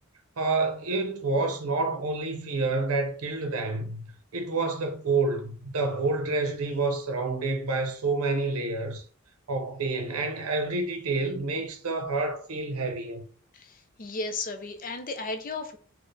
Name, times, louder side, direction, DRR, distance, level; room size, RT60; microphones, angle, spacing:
voice 1, 0.4-9.0 9.5-13.2, right 3 dB, 90° right, 0.6 m, -28 dB
voice 2, 13.5-15.8, left 3 dB, 40° left, 0.5 m, -34 dB
4.4 x 2.1 x 3.2 m
head